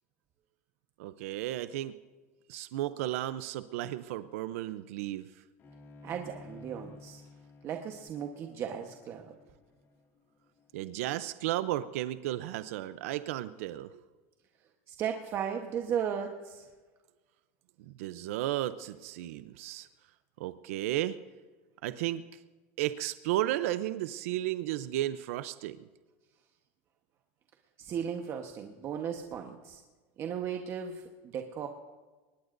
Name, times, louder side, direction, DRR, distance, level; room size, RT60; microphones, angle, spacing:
voice 1, 1.0-1.9 2.5-5.3 10.7-14.0 17.8-19.9 20.4-21.2 21.8-22.2 22.8-25.8, right 14 dB, 80° right, 13 dB, 0.6 m, -34 dB
Bowed string instrument, 5.6-10.9, left 3 dB, 30° left, 2.1 m, -53 dB
voice 2, 6.0-7.2 7.6-9.3 14.9-16.6 27.8-29.8 30.2-31.7, right 8 dB, 35° right, 4 dB, 1.1 m, -36 dB
22.0 x 20.0 x 2.6 m, 1.3 s
supercardioid pair, 145°, 8 cm